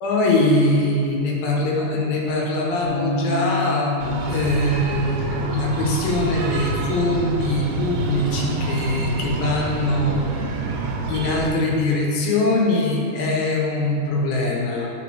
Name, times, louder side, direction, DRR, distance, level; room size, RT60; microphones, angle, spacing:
voice 1, 0.0-4.0 4.3-10.7 11.1-14.9, left 2 dB, 75° left, -2 dB, 2.8 m, -22 dB
Bass guitar, 2.8-9.1, left 4 dB, 55° left, 0.4 m, -31 dB
Breathing, 4.0-11.5, right 3 dB, 85° right, 2.8 m, -28 dB
10.5 x 5.2 x 4.6 m, 2.6 s
omnidirectional pair, 4.4 m